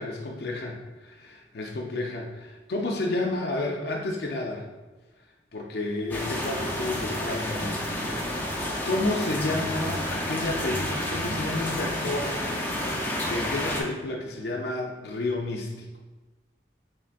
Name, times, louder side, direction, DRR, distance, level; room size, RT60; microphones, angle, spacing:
voice 1, 0.0-4.6 5.5-8.2 8.8-12.4 13.2-15.9, left 2 dB, 65° left, 1 dB, 0.5 m, -31 dB
sound 1, 6.1-13.8, left 1 dB, 10° left, 0.5 m, -30 dB
4.6 x 3.2 x 2.4 m, 1.2 s
head